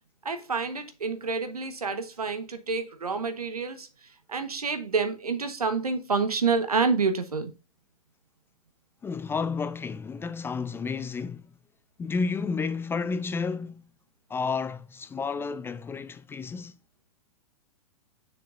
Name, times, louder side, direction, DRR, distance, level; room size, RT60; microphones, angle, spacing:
voice 1, 0.2-3.9 4.3-7.5, right 4 dB, 85° right, 1.3 m, -28 dB
voice 2, 9.0-11.5 12.0-13.8 14.3-16.7, left 5 dB, 10° left, 0.4 m, -31 dB
6.7 x 6.5 x 2.6 m
figure-of-eight pair, 105°, 19 cm